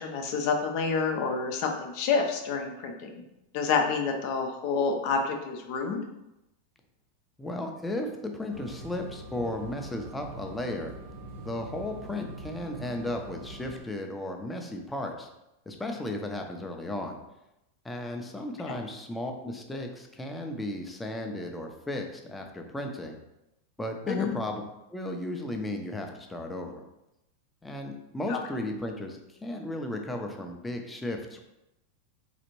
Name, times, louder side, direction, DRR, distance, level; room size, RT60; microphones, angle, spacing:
voice 1, 0.0-3.1 3.5-6.0 24.1-24.3 28.3-28.4, left 5 dB, 55° left, 3 dB, 0.5 m, -28 dB
voice 2, 7.4-10.9 11.4-15.3 15.7-17.2 17.8-23.2 23.8-24.6 24.9-26.8 27.6-31.4, left 1 dB, 10° left, 3 dB, 0.6 m, -35 dB
sound 1, 8.5-13.8, right 1 dB, 60° right, 0.9 m, -43 dB
4.0 x 2.5 x 3.0 m, 0.91 s
hypercardioid pair, 95°, 0 cm